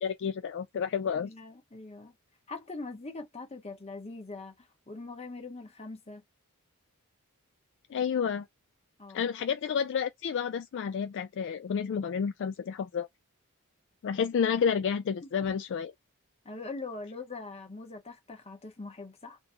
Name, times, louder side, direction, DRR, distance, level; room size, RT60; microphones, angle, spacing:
voice 1, 0.0-1.3 7.9-8.5 9.1-13.1 14.0-15.9, left 7 dB, 55° left, 0.3 m, -30 dB
voice 2, 1.1-2.2 2.5-6.2 9.0-9.3 15.2-15.3 16.4-19.4, left 3 dB, 30° left, 0.9 m, -42 dB
2.7 x 2.1 x 3.7 m
head